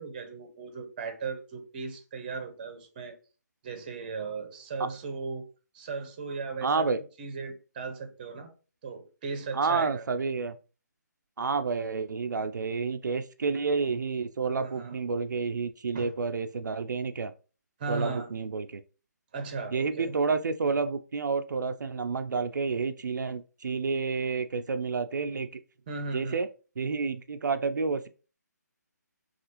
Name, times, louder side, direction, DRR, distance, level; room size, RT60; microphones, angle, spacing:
voice 1, 0.0-3.2 3.6-5.4 5.7-6.9 7.2-8.5 8.8-10.0 14.6-14.9 15.9-16.1 17.8-18.3 19.3-20.1 25.9-26.4, right 4 dB, 30° right, 0.7 m, -37 dB
voice 2, 6.6-7.0 9.5-10.6 11.4-17.3 17.9-18.8 19.7-25.6 26.1-26.5 26.8-28.1, right 4 dB, 85° right, 0.3 m, -29 dB
3.3 x 2.4 x 2.9 m
hypercardioid pair, 160°, 10 cm